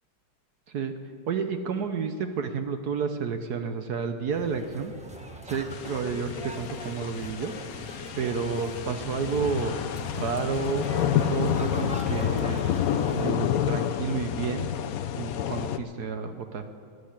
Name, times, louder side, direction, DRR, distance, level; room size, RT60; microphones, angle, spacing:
voice 1, 1.3-4.9 5.4-7.9 8.2-9.8 10.1-10.9 11.3-12.7 13.1-14.7 15.2-16.6, right 5 dB, 60° right, 7 dB, 1.2 m, -30 dB
sound 1, 4.3-13.3, equal, 5° right, 1.1 m, -40 dB
sound 2, 5.7-15.8, left 9 dB, 75° left, 0.8 m, -29 dB
14.5 x 9.7 x 9.9 m, 2.1 s
omnidirectional pair, 2.2 m